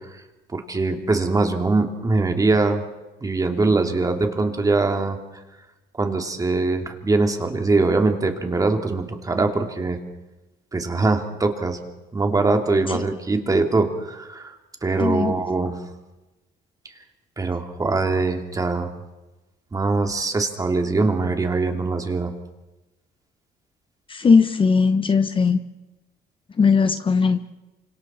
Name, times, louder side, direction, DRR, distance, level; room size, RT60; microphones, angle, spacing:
voice 1, 0.5-2.8 3.2-5.2 6.0-10.0 10.7-11.8 12.1-14.5 14.8-15.7 17.4-18.9 19.7-22.3, right 3 dB, 20° right, 5 dB, 2.7 m, -22 dB
voice 2, 15.0-15.3 24.1-25.6 26.6-27.4, left 5 dB, 30° left, 9 dB, 1.1 m, -18 dB
28.5 x 25.5 x 4.4 m, 1.0 s
cardioid pair, 110°, 17 cm